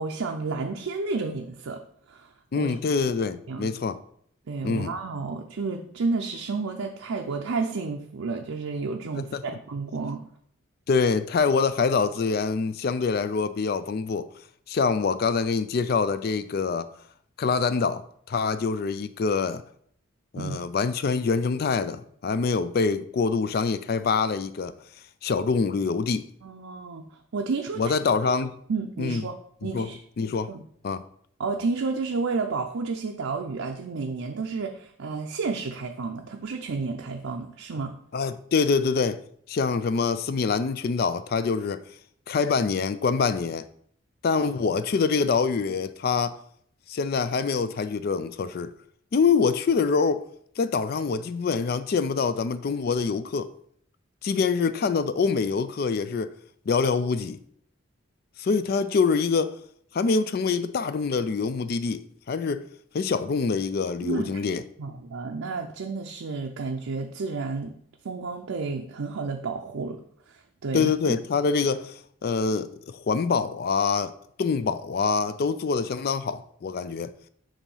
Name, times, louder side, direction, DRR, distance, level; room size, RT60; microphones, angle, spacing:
voice 1, 0.0-1.8 2.1-2.3 2.5-2.8 3.5-3.7 4.5-10.2 20.3-20.6 26.4-28.0 28.7-29.3 29.6-30.0 30.5-30.6 31.4-38.0 64.0-64.4 64.8-67.7 68.0-70.0 70.3-70.4 70.6-70.9, right 4 dB, 85° right, 0.5 m, -31 dB
voice 2, 2.5-4.0 4.6-4.9 9.2-9.4 10.9-14.3 14.7-16.9 17.4-19.6 20.3-24.7 25.2-26.3 27.8-28.6 29.0-29.2 29.6-29.9 30.2-30.5 30.8-31.0 38.1-39.2 39.5-41.8 42.3-43.7 44.2-46.4 46.9-48.7 49.1-50.2 50.6-53.5 54.2-56.3 56.7-57.4 58.4-59.6 59.9-62.7 62.9-64.6 70.7-77.1, left 5 dB, 50° left, 0.3 m, -25 dB
7.1 x 2.7 x 5.4 m
head